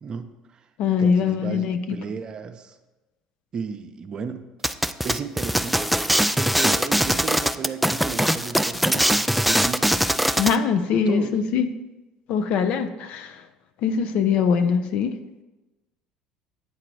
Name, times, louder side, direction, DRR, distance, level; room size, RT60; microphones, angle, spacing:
voice 1, 0.0-0.7 1.0-2.8 3.5-4.5 5.0-10.0 11.1-11.3, right 6 dB, 40° right, 8 dB, 0.6 m, -34 dB
voice 2, 0.8-2.0 10.4-11.7 12.3-13.4 13.8-15.2, left 6 dB, 65° left, 9 dB, 0.6 m, -22 dB
sound 1, 4.6-10.6, equal, ahead, 0.3 m, -22 dB
8.6 x 3.9 x 4.6 m, 1.1 s
hypercardioid pair, 70°, 2 cm